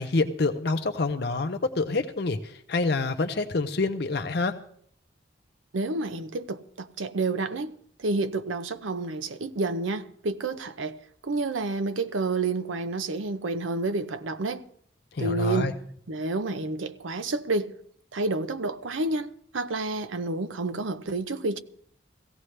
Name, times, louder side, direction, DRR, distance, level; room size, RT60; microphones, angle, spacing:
voice 1, 0.0-4.5 15.1-15.7, left 3 dB, 55° left, 0.6 m, -27 dB
voice 2, 5.7-14.7 15.2-15.8 16.1-17.8 18.1-21.6, right 3 dB, 90° right, 0.7 m, -29 dB
16.5 x 16.0 x 3.3 m
head